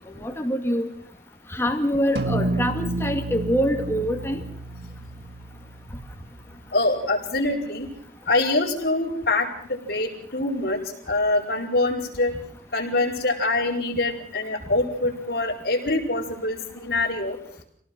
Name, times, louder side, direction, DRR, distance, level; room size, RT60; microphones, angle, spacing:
voice 1, 0.2-0.9 1.5-4.4, equal, 15° left, 4 dB, 2.3 m, -25 dB
sound 1, 2.2-6.8, right 2 dB, 65° right, 1.5 m, -30 dB
voice 2, 6.7-7.9 8.3-10.8 11.1-12.3 12.7-17.4, left 2 dB, 55° left, -1 dB, 4.9 m, -24 dB
26.5 x 18.0 x 6.1 m, 0.65 s
head